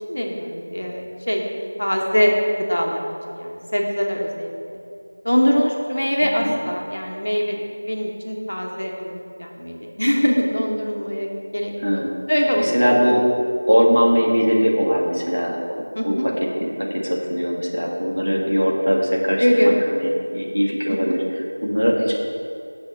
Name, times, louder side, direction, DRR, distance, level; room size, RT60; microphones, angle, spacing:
voice 1, 0.1-1.4 1.8-2.3 2.7-4.5 5.2-12.0 12.3-13.1 16.0-16.3 19.4-19.8 20.9-21.2, equal, 45° left, 0 dB, 1.1 m, -22 dB
voice 2, 6.2-6.5 11.8-12.1 12.6-13.3 13.7-15.6 16.0-22.1, equal, 70° right, -2 dB, 1.8 m, -20 dB
6.5 x 5.5 x 7.2 m, 2.5 s
figure-of-eight pair, 175°, 0 cm